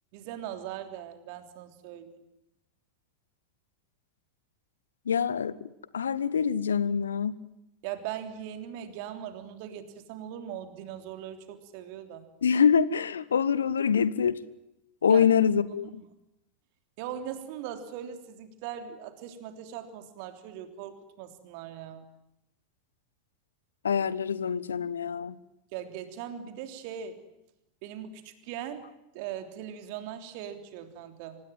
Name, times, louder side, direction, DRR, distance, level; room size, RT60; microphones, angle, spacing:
voice 1, 0.1-2.2 7.8-12.2 15.1-15.2 15.8-15.9 17.0-22.0 25.7-27.2 27.8-28.8 29.1-31.4, right 10 dB, 50° right, 8 dB, 3.3 m, -40 dB
voice 2, 5.1-5.7 5.9-7.4 12.4-14.4 15.0-16.0 23.8-25.3, left 7 dB, 75° left, 19 dB, 1.0 m, -25 dB
25.5 x 19.5 x 9.1 m, 0.87 s
figure-of-eight pair, 85°, 0 cm